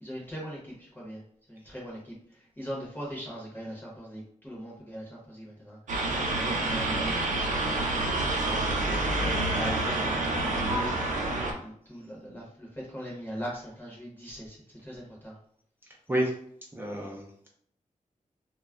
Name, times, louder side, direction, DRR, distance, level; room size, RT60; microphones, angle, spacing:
voice 1, 0.0-1.2 1.5-2.2 2.6-5.8 6.3-9.0 9.5-11.0 11.5-14.6 14.8-15.3, equal, 15° left, -5 dB, 0.8 m, -40 dB
sound 1, 5.9-11.5, right 2 dB, 70° right, 0.5 m, -28 dB
voice 2, 16.7-17.5, equal, 15° right, -2 dB, 0.4 m, -30 dB
2.2 x 2.0 x 3.5 m, 0.65 s
wide cardioid pair, 150°, 14 cm